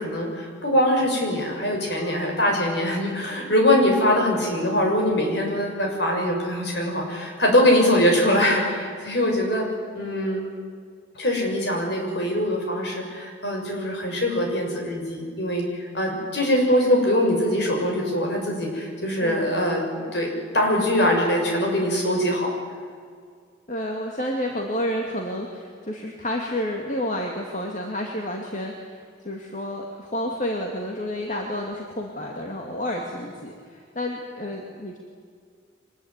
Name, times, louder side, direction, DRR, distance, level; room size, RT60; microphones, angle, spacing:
voice 1, 0.0-9.7 9.9-10.4 11.2-22.5, left 1 dB, 60° left, 1 dB, 6.8 m, -22 dB
voice 2, 23.7-35.0, left 1 dB, 40° left, 0 dB, 2.5 m, -30 dB
24.5 x 21.0 x 9.7 m, 2.1 s
head